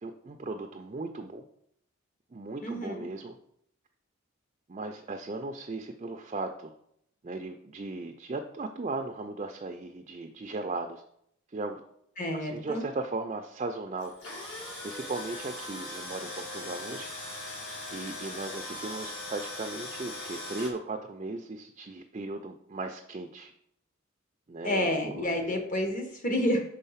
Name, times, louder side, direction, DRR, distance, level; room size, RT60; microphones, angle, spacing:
voice 1, 0.0-1.4 2.3-3.4 4.7-6.7 7.2-11.0 11.5-11.8 12.3-14.1 14.5-17.1 17.9-23.5 24.5-25.5, right 3 dB, 30° right, 5 dB, 0.4 m, -37 dB
voice 2, 2.6-3.1 12.2-12.8 24.6-26.6, left 1 dB, 40° left, 3 dB, 1.1 m, -29 dB
Tools, 14.0-20.7, left 2 dB, 60° left, 2.1 m, -40 dB
5.5 x 3.8 x 5.6 m, 0.71 s
head